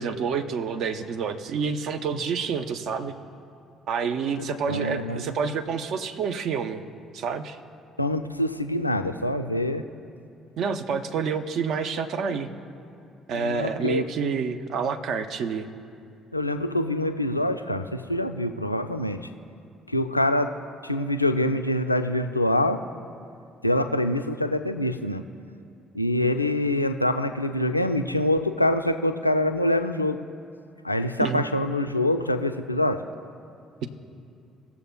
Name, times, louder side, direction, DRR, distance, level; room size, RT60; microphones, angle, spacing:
voice 1, 0.0-3.1 3.9-6.8 7.1-7.6 10.6-12.5 13.3-15.7 31.2-31.5, right 6 dB, 55° right, 8 dB, 0.6 m, -28 dB
voice 2, 4.4-5.3 8.0-9.8 13.3-14.0 16.3-19.2 19.9-20.5 20.8-22.8 23.6-25.2 25.9-30.2 30.8-33.0, left 1 dB, 90° left, 7 dB, 0.3 m, -25 dB
18.0 x 7.0 x 2.2 m, 2.5 s
figure-of-eight pair, 50°, 0 cm